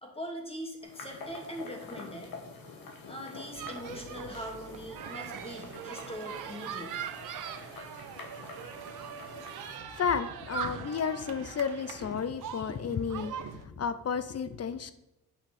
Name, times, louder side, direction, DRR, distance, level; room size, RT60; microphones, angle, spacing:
voice 1, 0.0-2.3 3.1-7.0, equal, 15° left, 1 dB, 2.7 m, -41 dB
sound 1, 0.8-9.8, left 3 dB, 65° left, 2.3 m, -47 dB
sound 2, 3.5-13.7, right 9 dB, 55° right, 0.9 m, -43 dB
sound 3, 5.0-12.3, right 8 dB, 80° right, 1.1 m, -45 dB
voice 2, 10.0-14.9, left 6 dB, 40° left, 13 dB, 0.9 m, -32 dB
8.7 x 5.7 x 5.3 m, 0.91 s
cardioid pair, 75°, 38 cm